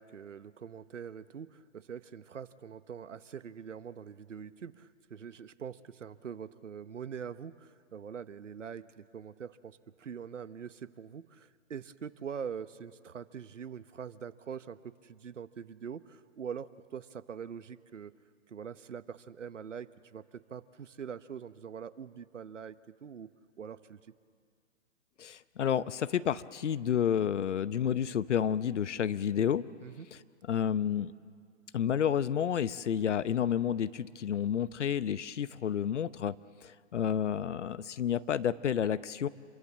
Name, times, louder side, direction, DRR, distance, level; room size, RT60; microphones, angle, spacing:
voice 1, 0.0-18.1 18.5-23.3 23.6-24.1 29.8-30.1, right 7 dB, 85° right, 15 dB, 1.0 m, -44 dB
voice 2, 25.2-29.6 30.5-31.1 31.7-36.3 36.6-39.3, left 8 dB, 75° left, 16 dB, 0.9 m, -30 dB
27.5 x 22.5 x 7.4 m, 2.2 s
hypercardioid pair, 130°, 36 cm